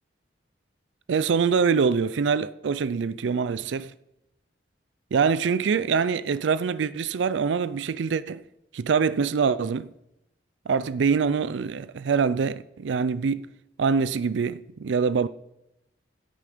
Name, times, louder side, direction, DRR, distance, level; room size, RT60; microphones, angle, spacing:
voice 1, 1.1-3.9 5.1-8.4 8.7-9.9 10.7-13.5 13.8-15.3, right 5 dB, 85° right, 0.4 m, -24 dB
15.5 x 8.5 x 5.0 m
head